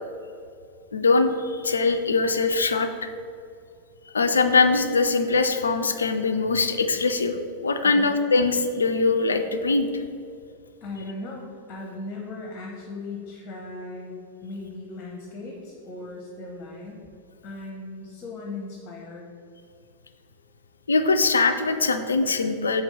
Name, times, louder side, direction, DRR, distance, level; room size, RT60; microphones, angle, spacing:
voice 1, 0.9-2.9 4.1-7.4 7.6-10.0 20.9-22.8, left 3 dB, 75° left, 8 dB, 0.4 m, -22 dB
voice 2, 10.8-17.0 17.4-19.3, left 2 dB, 35° left, 0 dB, 0.8 m, -38 dB
4.5 x 3.9 x 5.5 m, 2.4 s
figure-of-eight pair, 90°, 0 cm